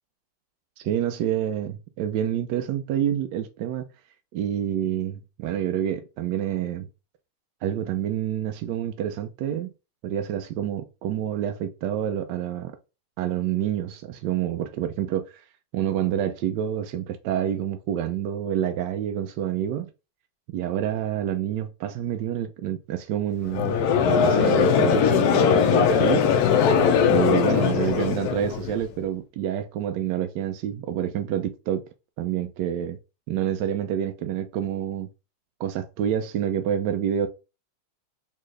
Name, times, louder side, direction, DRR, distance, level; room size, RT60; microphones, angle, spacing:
voice 1, 0.8-3.9 4.3-6.9 7.6-9.7 10.0-12.7 13.2-15.4 15.7-19.9 20.5-26.2 27.1-31.8 32.2-33.0 33.3-35.1 35.6-37.3, right 10 dB, 75° right, 1.0 m, -28 dB
Conversation / Crowd, 23.5-28.8, left 7 dB, 85° left, 0.8 m, -20 dB
4.2 x 3.6 x 3.2 m
omnidirectional pair, 2.3 m